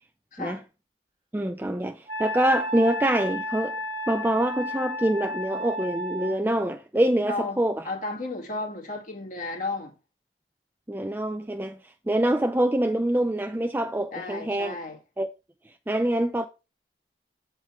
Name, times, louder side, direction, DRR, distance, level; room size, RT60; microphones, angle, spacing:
voice 1, 1.3-3.8 4.1-7.8 10.9-14.7 15.2-15.3 15.7-16.5, right 1 dB, 10° right, 0.4 m, -25 dB
Wind instrument woodwind instrument, 2.1-6.4, equal, 30° right, 1.8 m, -32 dB
voice 2, 7.3-7.6 7.8-9.9 14.1-15.0, left 3 dB, 45° left, 2.2 m, -33 dB
7.8 x 4.4 x 4.7 m
head